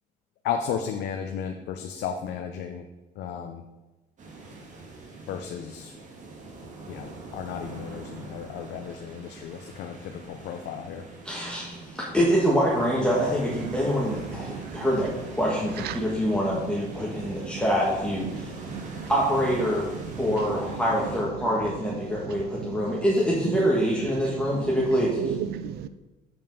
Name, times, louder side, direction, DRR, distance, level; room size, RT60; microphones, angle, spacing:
voice 1, 0.4-2.8 3.2-3.6 5.3-5.9 6.9-11.1, left 7 dB, 75° left, 0.7 m, -34 dB
sound 1, 4.2-21.2, right 2 dB, 45° right, 1.8 m, -42 dB
voice 2, 11.2-18.5 19.1-19.9 20.2-25.2, equal, 5° left, 1.6 m, -25 dB
voice 3, 13.6-14.9 15.8-17.7 18.2-19.1 19.6-23.7 24.0-25.9, right 9 dB, 70° right, 0.6 m, -37 dB
7.2 x 5.5 x 5.4 m
cardioid pair, 110°, 17 cm